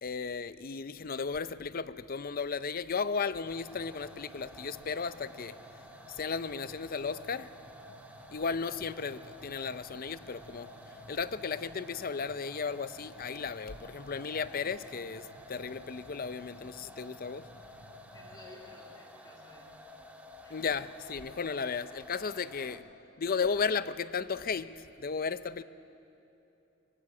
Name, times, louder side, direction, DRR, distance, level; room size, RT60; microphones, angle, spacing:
voice 1, 0.0-5.5 6.1-7.5 8.3-10.7 11.1-17.5 20.5-22.8 23.2-25.6, left 5 dB, 45° left, 0.6 m, -35 dB
sound 1, 3.4-18.5, equal, 85° left, 1.5 m, -58 dB
sound 2, 3.4-22.8, left 1 dB, 10° right, 1.5 m, -51 dB
voice 2, 18.1-19.7 20.4-20.7 22.3-22.4 22.7-22.8, left 1 dB, 20° left, 2.2 m, -54 dB
23.0 x 18.5 x 8.7 m
head